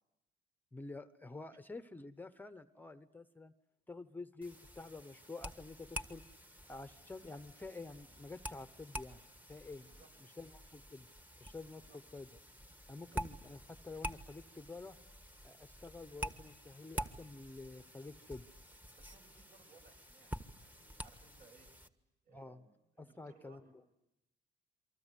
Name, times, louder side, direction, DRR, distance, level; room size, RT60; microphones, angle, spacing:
voice 1, 0.7-3.5 3.9-6.2 6.7-9.2 9.5-9.9 10.4-11.1 11.4-11.8 12.1-12.3 12.9-15.0 15.4-18.4 22.3-22.7 23.0-23.6, left 3 dB, 10° left, 11 dB, 0.9 m, -49 dB
sound 1, 4.4-21.9, equal, 10° right, 1.5 m, -48 dB
voice 2, 9.8-10.1 11.7-12.0 13.0-13.6 18.9-21.7 22.2-23.9, right 4 dB, 60° right, 5 dB, 7.5 m, -65 dB
28.0 x 24.5 x 8.3 m, 0.89 s
cardioid pair, 110°, 17 cm